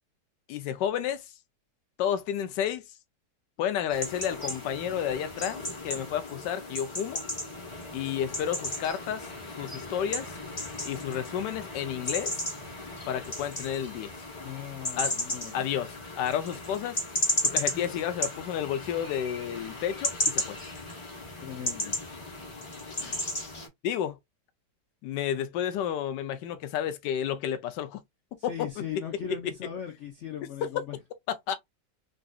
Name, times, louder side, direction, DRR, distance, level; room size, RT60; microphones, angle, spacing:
voice 1, 0.5-1.2 2.0-2.8 3.6-7.2 7.9-9.3 9.6-10.3 10.9-12.4 13.1-14.1 15.0-15.1 15.5-17.0 17.4-20.6 23.8-24.2 25.0-28.0 28.3-28.8 31.5-31.6, left 9 dB, 90° left, 1.2 m, -31 dB
sound 1, 3.9-23.7, left 1 dB, 25° left, 0.8 m, -34 dB
voice 2, 14.4-15.7 21.4-22.0 23.0-23.2 28.5-31.0, left 9 dB, 65° left, 0.7 m, -39 dB
3.9 x 2.4 x 2.3 m
omnidirectional pair, 1.8 m